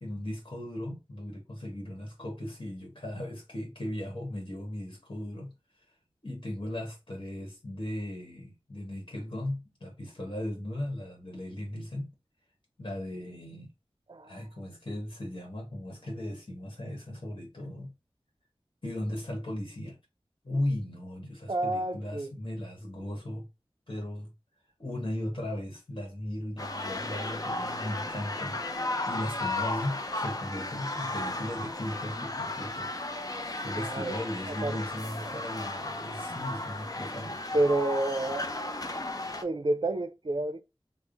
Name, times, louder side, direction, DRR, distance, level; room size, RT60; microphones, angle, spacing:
voice 1, 0.0-5.5 6.2-12.1 12.8-13.7 14.2-17.9 18.8-20.0 20.4-23.4 23.9-24.3 24.8-32.9 33.6-37.6, left 1 dB, 55° left, 1.3 m, -37 dB
voice 2, 21.5-22.3 33.8-34.2 34.5-34.8 37.5-38.5 39.4-40.6, right 2 dB, 55° right, 0.5 m, -29 dB
sound 1, 26.6-39.4, left 2 dB, 35° left, 0.5 m, -35 dB
3.4 x 2.1 x 3.8 m
wide cardioid pair, 50°, 10 cm